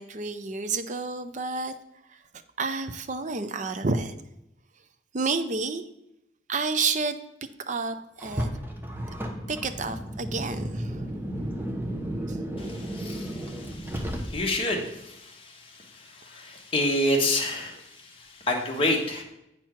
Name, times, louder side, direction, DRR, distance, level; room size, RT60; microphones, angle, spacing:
voice 1, 0.0-1.7 2.6-4.1 5.1-5.8 6.5-7.2 7.7-8.5 9.5-11.1 12.3-12.8, right 4 dB, 40° right, 9 dB, 0.5 m, -30 dB
Car, 8.2-14.7, right 1 dB, 10° right, 0.8 m, -33 dB
voice 2, 12.6-19.2, left 1 dB, 30° left, 0 dB, 1.4 m, -29 dB
8.6 x 4.6 x 5.8 m, 0.86 s
head